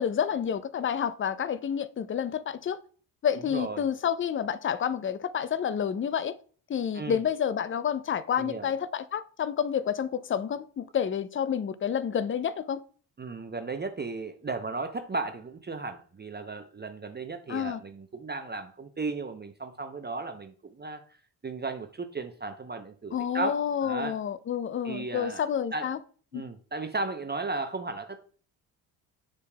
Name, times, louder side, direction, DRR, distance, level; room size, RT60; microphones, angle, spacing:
voice 1, 0.0-2.8 3.2-6.3 6.7-12.8 17.5-17.8 23.1-26.0 26.3-26.5, left 8 dB, 25° left, 0.4 m, -29 dB
voice 2, 3.5-3.9 6.9-7.2 8.4-8.7 13.2-21.0 21.4-24.2 24.8-25.9 26.3-28.2, right 3 dB, 20° right, 0.7 m, -35 dB
6.7 x 6.6 x 2.2 m
hypercardioid pair, 50°, 49 cm